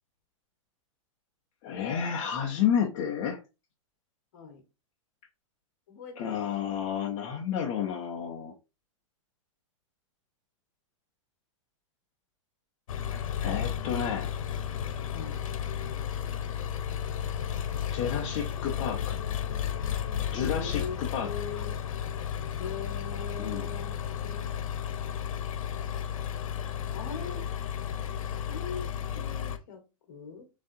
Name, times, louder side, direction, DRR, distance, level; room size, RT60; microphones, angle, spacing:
voice 1, 1.6-3.4 6.2-8.5 13.0-14.3 17.9-19.2 20.3-21.3 23.4-23.7, left 8 dB, 20° left, 0.4 m, -31 dB
voice 2, 4.3-4.6 5.9-6.8 15.1-15.4 20.4-21.8 22.6-24.5 26.9-27.5 28.0-30.5, left 5 dB, 40° left, 1.4 m, -42 dB
Engine, 12.9-29.6, left 9 dB, 80° left, 0.7 m, -33 dB
6.9 x 2.7 x 2.6 m
supercardioid pair, 180°, 17 cm